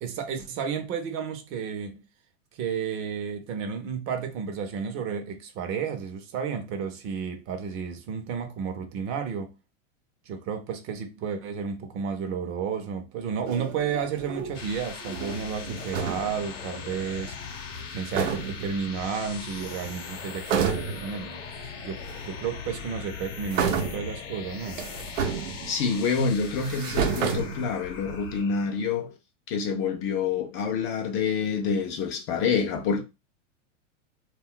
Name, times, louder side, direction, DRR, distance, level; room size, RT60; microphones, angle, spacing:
voice 1, 0.0-2.0 2.5-9.5 10.3-17.4 17.9-24.8, right 6 dB, 35° right, 0.5 m, -32 dB
sound 1, 13.4-14.6 15.0-16.4 17.8-17.9 18.1-18.8 19.6-20.1 20.4-21.2 22.1-22.2 23.5-24.2 24.7-26.0 26.5-28.0, right 6 dB, 85° right, 0.7 m, -30 dB
sound 2, 14.3-28.8, left 6 dB, 65° left, 0.8 m, -40 dB
voice 2, 25.7-29.1 29.5-33.0, left 5 dB, 35° left, 0.4 m, -27 dB
2.3 x 2.1 x 3.6 m
hypercardioid pair, 120°, 38 cm